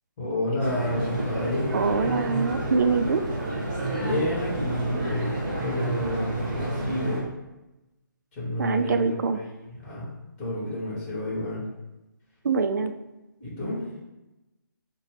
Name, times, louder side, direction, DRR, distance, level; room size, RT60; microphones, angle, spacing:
voice 1, 0.2-1.7 4.0-7.3 8.3-9.5 9.8-10.1 10.4-11.6 13.4-13.8, left 1 dB, 25° left, -5 dB, 1.2 m, -29 dB
sound 1, 0.6-7.2, right 1 dB, 30° right, 1.5 m, -30 dB
voice 2, 1.7-3.2 8.6-9.4 12.4-12.9, right 4 dB, 55° right, 9 dB, 0.3 m, -24 dB
sound 2, 1.8-7.0, right 5 dB, 10° right, 1.5 m, -38 dB
4.6 x 2.2 x 3.4 m, 1.0 s
figure-of-eight pair, 150°, 11 cm